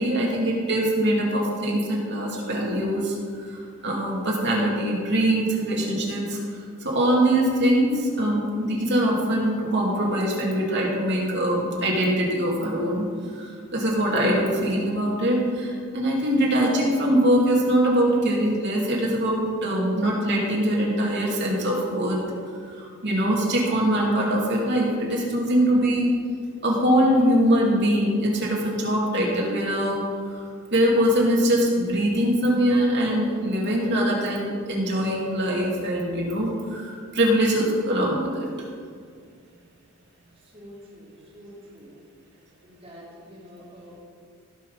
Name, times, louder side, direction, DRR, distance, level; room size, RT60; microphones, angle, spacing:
voice 1, 0.0-22.2 22.6-26.1 26.6-30.0 30.7-38.7, equal, 55° right, -3 dB, 2.6 m, -23 dB
voice 2, 40.5-41.9 42.6-44.0, equal, 30° right, -6 dB, 3.4 m, -46 dB
16.5 x 6.1 x 5.1 m, 2.1 s
head